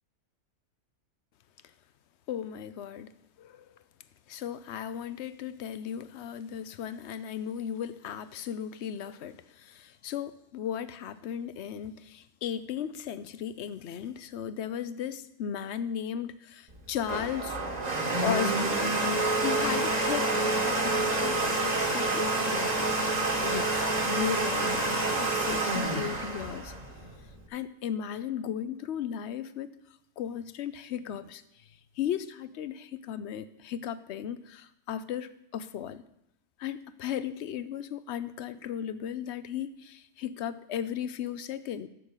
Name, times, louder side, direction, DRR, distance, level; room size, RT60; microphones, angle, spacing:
voice 1, 2.3-3.1 3.4-3.7 4.3-17.6 18.2-19.0 19.4-23.0 23.4-26.7 27.5-29.7 30.2-31.4 32.0-36.0 36.6-41.9, left 9 dB, 70° left, 14 dB, 0.9 m, -36 dB
Domestic sounds home sounds, 16.7-27.4, right 2 dB, 35° right, 1.4 m, -28 dB
11.0 x 6.5 x 7.3 m, 0.79 s
omnidirectional pair, 1.2 m